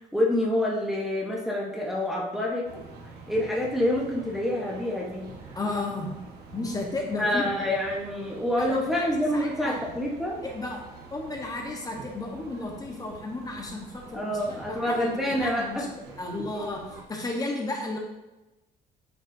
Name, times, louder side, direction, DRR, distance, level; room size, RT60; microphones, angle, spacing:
voice 1, 0.0-2.8 3.3-5.3 7.2-10.4 14.1-15.9, left 1 dB, ahead, -4 dB, 1.1 m, -27 dB
sound 1, 2.6-17.1, right 4 dB, 75° right, 1.3 m, -47 dB
voice 2, 5.5-6.1 6.5-7.5 8.6-9.0 9.3-9.8 10.4-10.8 11.1-15.9 16.2-16.8 17.1-18.0, left 2 dB, 20° left, 0 dB, 1.2 m, -33 dB
8.4 x 5.1 x 2.7 m, 1.0 s
cardioid pair, 110°, 17 cm